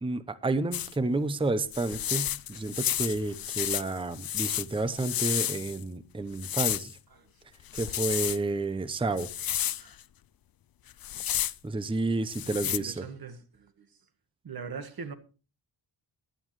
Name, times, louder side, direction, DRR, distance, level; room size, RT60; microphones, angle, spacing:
voice 1, 0.0-7.0 7.7-9.3 11.6-13.1, right 2 dB, 10° right, 0.7 m, -30 dB
sound 1, 0.7-0.9 1.7-5.8 6.4-6.9 7.7-8.4 9.2-9.8 10.9-11.5 12.3-12.8, left 11 dB, 50° left, 0.5 m, -31 dB
voice 2, 12.6-13.9 14.4-15.1, right 5 dB, 50° right, 1.6 m, -41 dB
16.5 x 11.5 x 3.2 m
wide cardioid pair, 155°, 46 cm